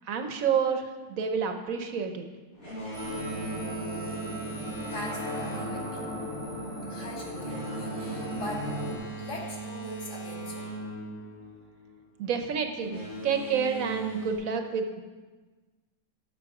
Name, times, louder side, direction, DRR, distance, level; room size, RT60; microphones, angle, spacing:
voice 1, 0.0-2.3 12.2-15.0, right 6 dB, 75° right, 6 dB, 1.2 m, -29 dB
Boat Water vehicle, 2.5-12.0 12.7-14.3, right 2 dB, 80° left, 3.6 m, -39 dB
sound 1, 2.9-9.0, equal, 15° left, 2.8 m, -36 dB
voice 2, 4.9-6.1 6.9-8.7 9.2-10.7, left 1 dB, 55° left, -3 dB, 2.3 m, -41 dB
12.5 x 6.3 x 4.8 m, 1.3 s
omnidirectional pair, 1.5 m